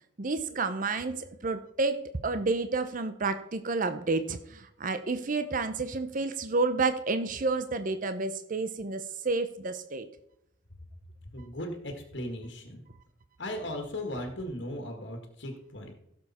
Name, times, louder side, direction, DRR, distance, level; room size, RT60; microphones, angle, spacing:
voice 1, 0.2-10.1, right 3 dB, 45° right, 10 dB, 0.6 m, -30 dB
voice 2, 11.3-12.8 13.4-15.9, left 1 dB, 60° left, 3 dB, 1.7 m, -37 dB
16.0 x 7.1 x 4.2 m, 0.79 s
head